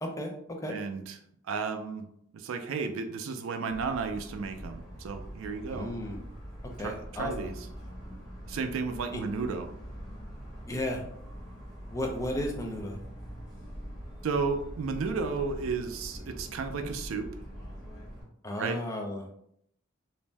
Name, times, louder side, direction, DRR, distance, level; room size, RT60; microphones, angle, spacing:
voice 1, 0.0-0.3 0.6-0.7 5.7-6.2 6.8-7.5 9.1-9.2 10.7-11.0 11.9-13.0 18.4-19.3, left 1 dB, 15° left, 2 dB, 0.4 m, -34 dB
voice 2, 0.7-1.2 1.4-2.1 2.3-5.9 6.8-7.5 8.5-9.7 14.2-17.3 18.6-18.8, right 4 dB, 75° right, 7 dB, 0.3 m, -33 dB
Motor vehicle (road) / Siren, 3.7-18.2, equal, ahead, 1.0 m, -43 dB
2.6 x 2.0 x 3.2 m, 0.71 s
head